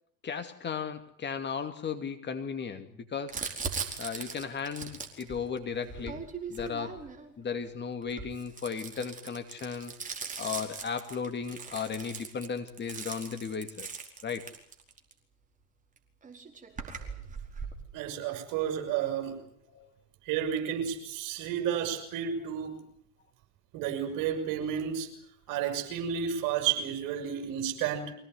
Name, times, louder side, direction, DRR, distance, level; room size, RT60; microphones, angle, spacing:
voice 1, 0.2-3.4 4.0-6.2 6.5-7.1 7.4-9.9 10.4-13.9 14.2-14.5 19.7-19.9, left 6 dB, 25° left, 8 dB, 2.4 m, -35 dB
Crumpling crinkling, 3.3-7.3 8.0-15.1 16.0-16.1 16.2-17.8, right 5 dB, 20° right, 4.8 m, -40 dB
voice 2, 17.9-19.4 20.3-22.8 23.7-25.1 25.5-28.1, right 8 dB, 45° right, 6 dB, 7.4 m, -31 dB
25.5 x 18.0 x 9.7 m, 0.65 s
hypercardioid pair, 90°, 43 cm